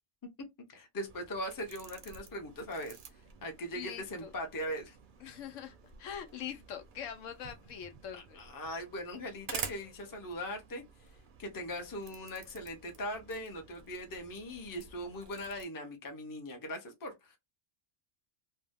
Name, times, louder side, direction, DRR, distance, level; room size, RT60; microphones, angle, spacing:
voice 1, 0.7-3.0 3.4-5.0 8.1-10.8 11.4-17.4, equal, 25° left, 0.5 m, -40 dB
sound 1, 1.0-15.6, right 6 dB, 55° right, 0.6 m, -49 dB
voice 2, 3.7-4.3 5.2-8.4, left 8 dB, 85° left, 1.0 m, -43 dB
2.6 x 2.1 x 3.4 m
omnidirectional pair, 1.3 m